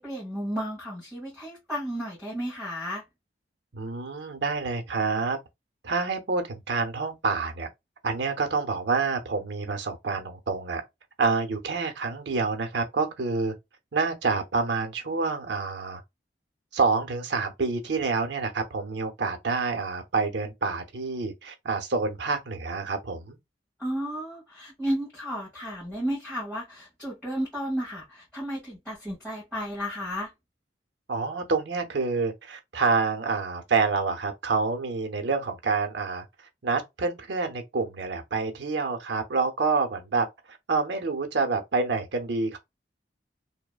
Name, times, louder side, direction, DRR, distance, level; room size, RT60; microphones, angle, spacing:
voice 1, 0.0-3.0 23.8-30.3, equal, 5° left, 1.4 m, -33 dB
voice 2, 3.7-5.4 5.8-7.7 8.0-10.8 11.2-13.5 13.9-16.0 16.7-23.4 31.1-36.2 36.6-42.6, right 4 dB, 75° right, 0.7 m, -27 dB
2.8 x 2.1 x 2.3 m
head